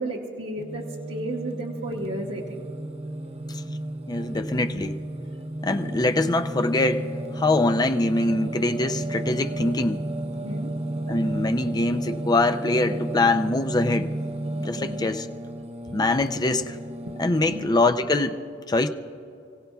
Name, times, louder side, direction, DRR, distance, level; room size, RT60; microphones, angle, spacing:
voice 1, 0.0-2.7 10.4-10.7 14.8-15.0 17.5-17.7, right 1 dB, 75° right, -4 dB, 1.3 m, -33 dB
Singing, 0.6-17.7, right 1 dB, 35° right, 0.7 m, -33 dB
voice 2, 4.1-5.0 5.6-7.1 7.4-10.0 11.1-14.1 14.6-15.3 15.9-16.8 17.2-18.4 18.7-18.9, left 2 dB, 20° left, 7 dB, 0.5 m, -23 dB
29.0 x 17.0 x 2.3 m, 2.6 s
head